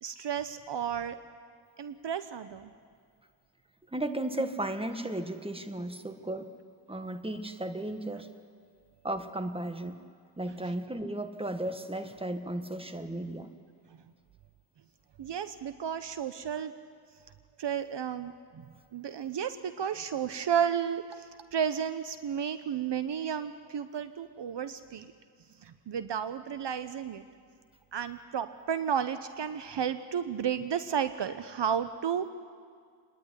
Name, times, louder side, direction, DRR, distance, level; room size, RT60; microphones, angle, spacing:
voice 1, 0.0-1.2 1.8-2.7 15.2-16.7 17.6-18.6 18.9-25.1 25.6-27.2 27.9-32.3, right 8 dB, 60° right, 11 dB, 0.9 m, -32 dB
voice 2, 3.9-6.5 6.9-8.3 9.0-10.0 10.4-13.5, right 1 dB, 10° right, 8 dB, 1.6 m, -35 dB
26.0 x 10.5 x 9.8 m, 2.1 s
cardioid pair, 50°, 47 cm